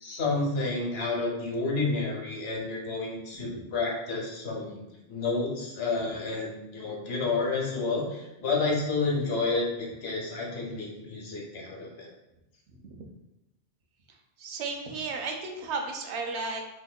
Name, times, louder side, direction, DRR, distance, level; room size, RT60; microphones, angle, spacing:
voice 1, 0.0-4.8 5.1-12.1, left 3 dB, 65° left, -3 dB, 1.1 m, -30 dB
voice 2, 14.4-16.6, right 4 dB, 85° right, 3 dB, 0.9 m, -34 dB
3.6 x 2.8 x 2.2 m, 0.94 s
omnidirectional pair, 1.1 m